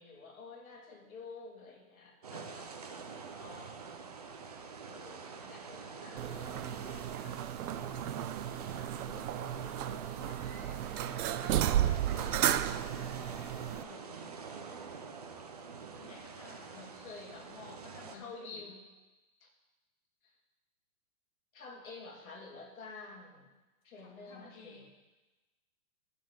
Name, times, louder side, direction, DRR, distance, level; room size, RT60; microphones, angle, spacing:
voice 1, 0.0-3.8 4.9-8.0 8.7-9.1 9.5-11.2 11.7-13.0 16.7-17.5 18.1-18.8 19.4-19.5 20.2-20.3 21.5-23.5 23.8-24.9, left 3 dB, 65° left, 0 dB, 2.6 m, -51 dB
sound 1, 2.2-18.2, right 5 dB, 30° right, 0.4 m, -46 dB
sound 2, 6.2-13.8, right 12 dB, 80° right, 0.6 m, -34 dB
sound 3, 10.2-14.8 15.1-16.2, right 6 dB, 60° right, 1.5 m, -51 dB
voice 2, 13.3-14.4 15.9-16.9 17.3-18.6 24.0-24.8, left 4 dB, 25° left, 0 dB, 0.8 m, -54 dB
12.5 x 4.2 x 7.9 m, 1.1 s
hypercardioid pair, 165°, 44 cm